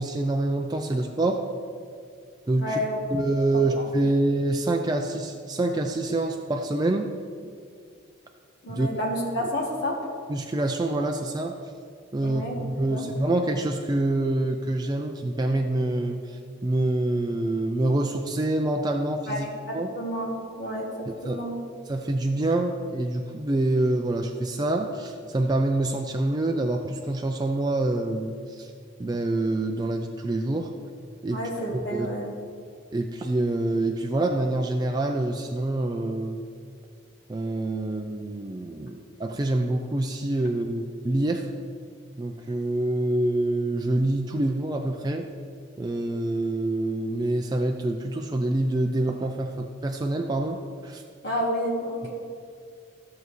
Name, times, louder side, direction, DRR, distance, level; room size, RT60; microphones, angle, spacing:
voice 1, 0.0-1.4 2.5-2.8 3.1-7.1 8.7-8.9 9.4-9.5 10.3-11.6 12.1-19.5 19.7-19.9 21.1-21.4 21.9-28.7 29.0-30.7 31.2-31.4 31.7-32.1 32.9-36.4 37.3-41.5 42.2-45.3 45.8-51.0, right 2 dB, 20° right, 3 dB, 0.3 m, -26 dB
voice 2, 2.6-3.0 3.8-3.9 8.6-10.0 12.2-12.5 12.8-13.1 19.3-21.6 31.3-32.3 51.2-52.1, equal, 55° left, -3 dB, 1.4 m, -30 dB
13.5 x 6.8 x 3.1 m, 2.2 s
head